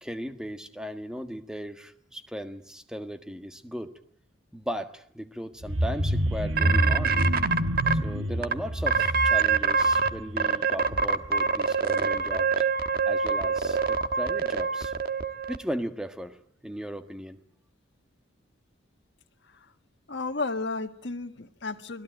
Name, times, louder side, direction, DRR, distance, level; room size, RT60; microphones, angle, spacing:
voice 1, 0.0-3.9 4.5-7.2 8.0-12.5 13.0-14.9 15.5-17.4, equal, 5° right, 1.6 m, -36 dB
sound 1, 5.6-11.4 11.8-12.0 12.3-12.4, equal, 80° right, 1.4 m, -28 dB
sound 2, 6.6-7.9 8.4-8.5 8.9-10.1 10.4-15.6, right 5 dB, 50° right, 1.4 m, -24 dB
voice 2, 20.1-22.0, left 3 dB, 60° left, 1.6 m, -33 dB
30.0 x 21.5 x 9.2 m
head